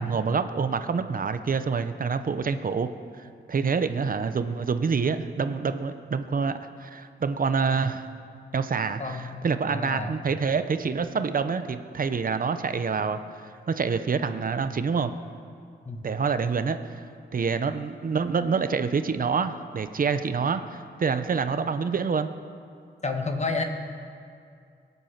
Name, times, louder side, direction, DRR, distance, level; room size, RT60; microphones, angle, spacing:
voice 1, 0.0-2.9 3.2-8.1 8.5-15.1 16.0-22.3, right 5 dB, 50° right, 10 dB, 0.8 m, -27 dB
voice 2, 9.0-10.2 15.8-16.0 23.0-23.6, left 3 dB, 35° left, 4 dB, 1.4 m, -30 dB
23.5 x 8.2 x 5.9 m, 2.3 s
wide cardioid pair, 115°, 19 cm